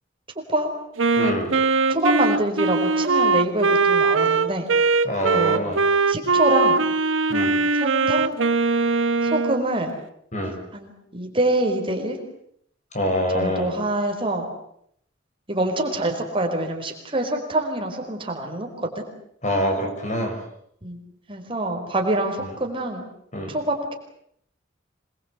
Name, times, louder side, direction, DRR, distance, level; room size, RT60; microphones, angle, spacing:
voice 1, 0.3-0.7 1.9-4.7 5.3-5.6 6.1-6.8 7.8-8.3 9.2-9.9 10.7-12.2 13.3-14.5 15.5-19.0 20.8-21.0 21.3-23.1 23.5-23.9, right 1 dB, 30° right, 2 dB, 4.8 m, -25 dB
Wind instrument woodwind instrument, 1.0-9.6, right 4 dB, 85° right, 1.2 m, -21 dB
voice 2, 1.2-1.5 5.0-5.8 7.3-7.6 10.3-10.5 12.9-13.7 19.4-20.4 23.3-23.5, equal, 40° left, 4 dB, 6.3 m, -25 dB
27.0 x 22.0 x 8.2 m, 0.70 s
head